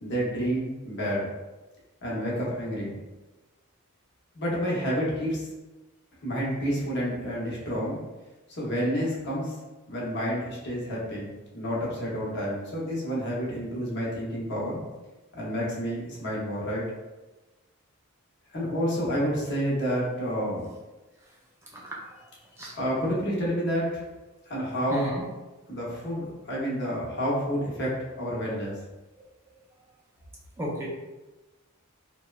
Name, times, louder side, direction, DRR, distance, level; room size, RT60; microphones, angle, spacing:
voice 1, 0.0-1.3 2.0-3.0 4.3-5.5 6.2-8.0 8.5-9.5 9.9-14.8 15.3-16.8 18.5-20.7 22.7-23.9 24.5-25.1 25.7-28.7, equal, 55° left, -5 dB, 0.8 m, -29 dB
voice 2, 24.9-25.2 30.6-30.9, right 1 dB, 10° right, -4 dB, 0.3 m, -32 dB
2.8 x 2.1 x 2.3 m, 1.1 s
head